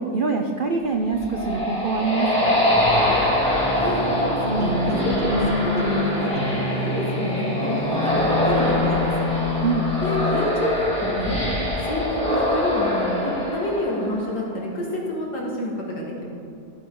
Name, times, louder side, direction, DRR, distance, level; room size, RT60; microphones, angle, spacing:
voice 1, 0.0-2.6 9.6-9.9, right 4 dB, 85° right, 4 dB, 0.4 m, -24 dB
sound 1, 0.9-14.5, left 1 dB, 5° left, 2.8 m, -24 dB
sound 2, 2.7-11.0, left 3 dB, 50° left, 2.7 m, -29 dB
voice 2, 3.8-9.3 10.0-11.4 11.8-16.3, equal, 70° left, -3 dB, 2.7 m, -28 dB
sound 3, 4.4-8.4, equal, 40° right, 1.0 m, -27 dB
14.0 x 9.6 x 3.9 m, 2.5 s
omnidirectional pair, 1.8 m